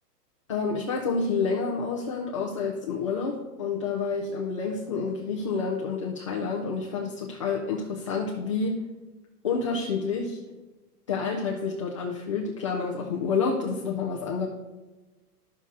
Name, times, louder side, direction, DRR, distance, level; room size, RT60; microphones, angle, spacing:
voice 1, 0.5-8.8 9.4-10.4 11.1-14.5, left 5 dB, 20° left, -2 dB, 0.4 m, -29 dB
11.0 x 6.7 x 3.8 m, 1.2 s
hypercardioid pair, 150°, 48 cm